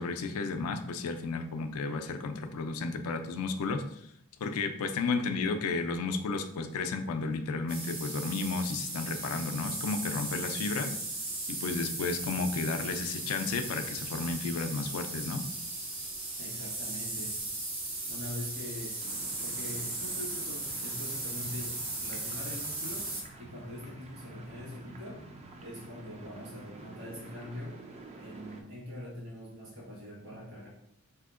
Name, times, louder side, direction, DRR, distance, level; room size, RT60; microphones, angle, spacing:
voice 1, 0.0-4.0 4.4-10.9 11.5-15.4, left 4 dB, 85° left, 7 dB, 0.4 m, -33 dB
sound 1, 7.7-23.2, right 2 dB, 90° right, 1.0 m, -37 dB
voice 2, 16.4-17.4 18.1-19.1 19.4-23.1 23.4-25.2 25.6-27.8 28.1-30.7, left 1 dB, 50° right, -4 dB, 1.3 m, -43 dB
sound 2, 19.0-28.6, right 2 dB, 30° right, 0.3 m, -49 dB
3.5 x 2.8 x 2.4 m, 0.72 s
head